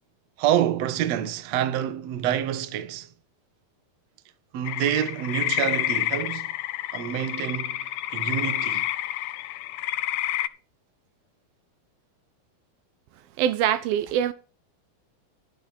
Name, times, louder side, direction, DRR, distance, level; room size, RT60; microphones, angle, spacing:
voice 1, 0.4-3.1 4.5-6.5 6.9-8.9, right 10 dB, 60° right, 1.9 m, -27 dB
sound 1, 4.7-10.5, left 14 dB, 80° left, 1.8 m, -29 dB
voice 2, 13.4-14.3, right 10 dB, 80° right, 2.6 m, -23 dB
11.5 x 10.5 x 4.4 m
omnidirectional pair, 4.3 m